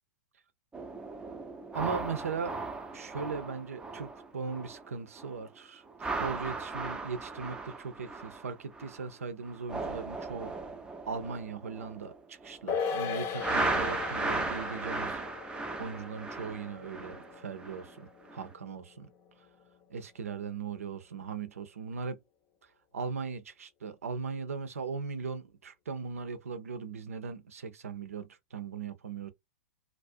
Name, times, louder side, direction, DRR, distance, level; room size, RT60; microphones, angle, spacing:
sound 1, 0.7-4.9 5.2-5.5 5.9-9.1 9.4-12.7 13.4-17.9 18.3-18.5, right 3 dB, 10° right, 0.5 m, -37 dB
voice 1, 1.7-2.6 2.9-10.5 11.1-15.2 15.8-19.1 19.9-22.2 22.9-29.3, right 5 dB, 80° right, 0.5 m, -38 dB
sound 2, 12.7-19.3 19.6-19.7, left 6 dB, 35° left, 0.6 m, -38 dB
2.4 x 2.0 x 2.5 m
hypercardioid pair, 105°, 8 cm